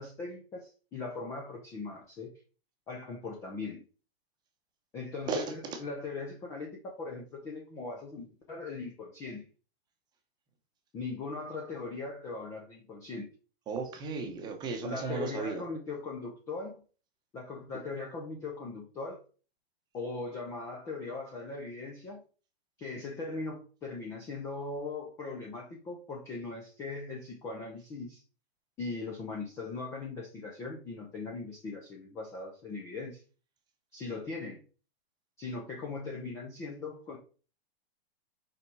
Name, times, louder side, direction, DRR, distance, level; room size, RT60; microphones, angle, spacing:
voice 1, 0.0-2.3 2.9-3.8 4.9-9.5 10.9-13.3 14.8-16.8 17.3-19.2 19.9-22.2 22.8-28.2 28.8-33.2 33.9-34.6 35.4-37.2, left 3 dB, 10° left, 0 dB, 0.5 m, -39 dB
voice 2, 5.3-5.8 13.7-15.6, right 4 dB, 15° right, 5 dB, 0.9 m, -35 dB
5.7 x 5.2 x 4.7 m, 0.37 s
hypercardioid pair, 170°, 32 cm